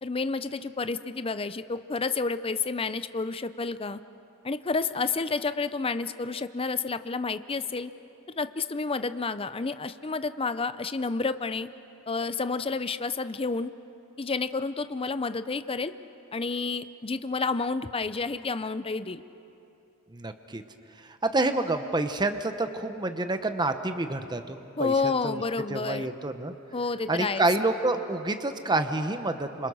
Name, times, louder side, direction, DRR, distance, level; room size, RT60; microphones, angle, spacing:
voice 1, 0.0-4.0 4.4-7.9 8.3-11.7 12.1-13.7 14.2-15.9 16.3-19.2 24.8-26.1 26.7-27.5, left 4 dB, 25° left, 12 dB, 0.6 m, -30 dB
voice 2, 20.1-20.6 21.0-25.4 25.7-26.5 27.1-29.7, right 2 dB, 20° right, 8 dB, 0.9 m, -28 dB
29.5 x 27.0 x 6.3 m, 2.8 s
head